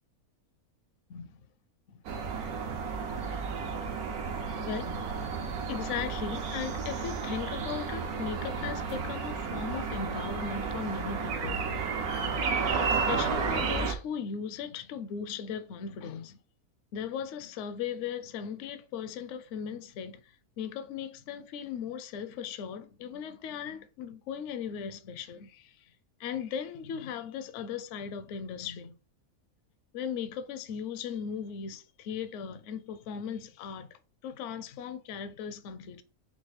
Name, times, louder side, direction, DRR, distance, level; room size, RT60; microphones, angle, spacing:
voice 1, 1.1-1.4 3.7-3.8 4.6-5.1 5.7-11.6 13.1-16.4 16.9-20.2 20.6-25.8 26.2-28.9 29.9-36.0, left 7 dB, 65° left, 0.8 m, -37 dB
sound 1, 2.0-13.9, right 5 dB, 80° right, 1.2 m, -32 dB
4.7 x 2.4 x 4.1 m
omnidirectional pair, 1.5 m